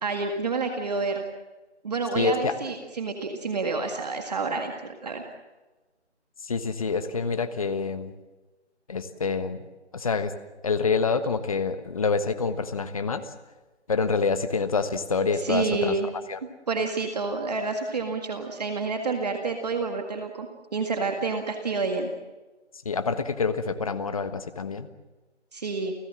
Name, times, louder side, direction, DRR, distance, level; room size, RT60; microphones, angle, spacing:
voice 1, 0.0-1.2 1.8-5.2 15.4-16.1 16.7-22.1 25.5-25.9, right 4 dB, 35° right, 4 dB, 1.9 m, -29 dB
voice 2, 2.1-2.5 6.5-8.1 8.9-9.6 9.9-10.3 10.6-13.3 13.9-16.0 16.3-16.4 22.8-24.9, left 4 dB, 30° left, 11 dB, 1.3 m, -27 dB
29.5 x 16.5 x 7.5 m, 1.2 s
figure-of-eight pair, 165°, 35 cm